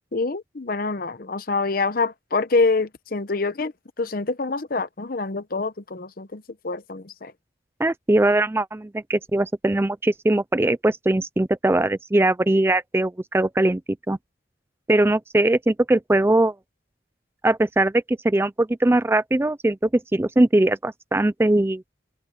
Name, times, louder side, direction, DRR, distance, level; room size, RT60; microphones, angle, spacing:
voice 1, 0.1-3.7 4.0-7.3, left 3 dB, 50° left, 0.8 m, -26 dB
voice 2, 7.8-13.8 14.1-14.2 14.9-16.5 17.4-21.8, right 1 dB, 10° right, 0.4 m, -21 dB
head